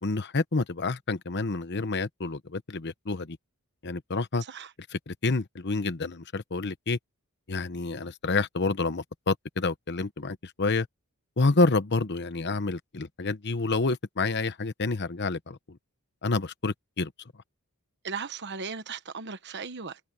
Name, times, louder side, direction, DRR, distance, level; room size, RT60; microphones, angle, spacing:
voice 1, 0.0-3.4 3.8-4.4 4.9-7.0 7.5-10.9 11.4-15.8 16.2-17.1, left 3 dB, 50° left, 1.0 m, -28 dB
voice 2, 18.0-20.0, right 5 dB, 50° right, 1.2 m, -37 dB
open air
head